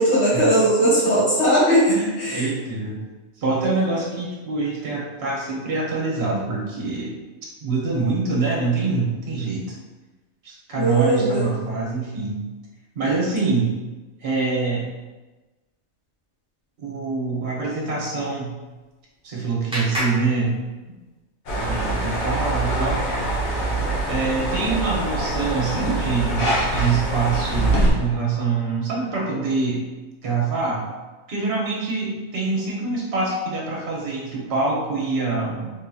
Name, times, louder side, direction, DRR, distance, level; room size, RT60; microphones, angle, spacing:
voice 1, 0.0-1.9 2.2-2.4 10.7-11.5, equal, 55° left, -10 dB, 1.8 m, -18 dB
voice 2, 1.9-3.0 3.4-7.2 7.6-9.7 10.4-12.5 12.9-13.8 14.2-14.9 16.8-18.6 19.2-20.6 21.6-23.1 24.1-29.8 30.2-30.9 31.3-35.7, right 4 dB, 55° right, -3 dB, 0.9 m, -25 dB
Clapping, 18.6-21.2, equal, 5° right, 0.4 m, -33 dB
sound 1, 21.5-27.9, right 1 dB, 80° left, 1.2 m, -24 dB
3.6 x 2.7 x 2.3 m, 1.2 s
omnidirectional pair, 1.4 m